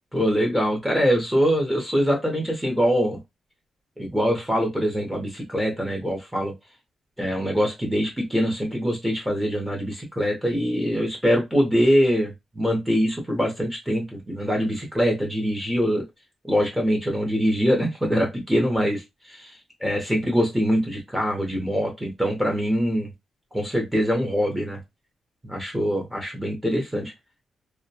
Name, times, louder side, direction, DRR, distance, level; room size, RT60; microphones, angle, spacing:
voice 1, 0.1-3.2 4.0-6.5 7.2-16.0 16.4-19.5 19.8-23.1 23.5-24.8 25.4-27.1, equal, 5° right, 0 dB, 0.6 m, -23 dB
2.2 x 2.1 x 2.7 m, 0.20 s
wide cardioid pair, 175°, 0 cm